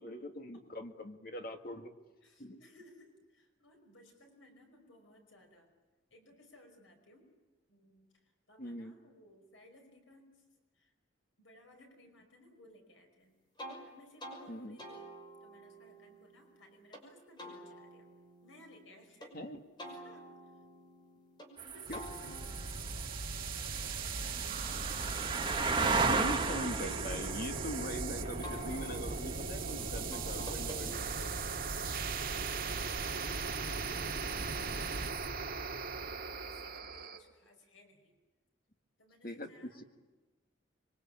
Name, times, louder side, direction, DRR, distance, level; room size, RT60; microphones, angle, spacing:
voice 1, 0.0-1.9 2.4-2.6 8.6-8.9 14.5-14.8 19.3-19.6 21.9-22.1 25.8-31.3 39.2-39.8, equal, 50° left, 6 dB, 2.0 m, -42 dB
voice 2, 2.2-5.7 6.1-7.3 7.7-8.1 8.5-10.4 10.7-10.9 11.4-13.3 13.8-15.1 15.4-18.1 18.4-19.3 20.0-20.6 21.6-22.8 23.6-24.5 31.7-35.1 35.6-38.1 39.0-39.8, left 1 dB, 90° left, 4 dB, 5.2 m, -60 dB
sound 1, 13.6-13.8 14.2-14.4 14.8-17.0 17.4-19.3 19.8-21.5 21.9-24.8 25.2-27.9 28.4-31.4, equal, 25° left, 5.9 m, -51 dB
sound 2, 21.6-35.3, right 4 dB, 25° right, 1.5 m, -38 dB
sound 3, 21.9-37.2, right 4 dB, 45° right, 2.0 m, -38 dB
26.0 x 23.5 x 8.8 m, 1.2 s
head